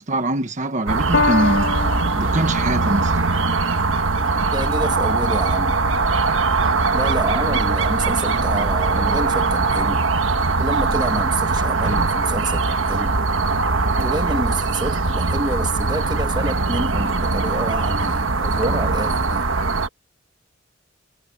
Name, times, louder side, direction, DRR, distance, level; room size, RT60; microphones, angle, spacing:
voice 1, 0.0-1.7 2.2-3.2, right 1 dB, 35° right, 1.2 m, -23 dB
sound 1, 0.9-19.9, right 3 dB, 70° right, 1.4 m, -21 dB
Piano, 1.1-7.7 8.5-8.6, left 4 dB, 60° left, 1.7 m, -29 dB
voice 2, 4.5-5.8 6.9-10.0 10.6-13.2 14.0-19.5, right 1 dB, 20° right, 1.4 m, -28 dB
head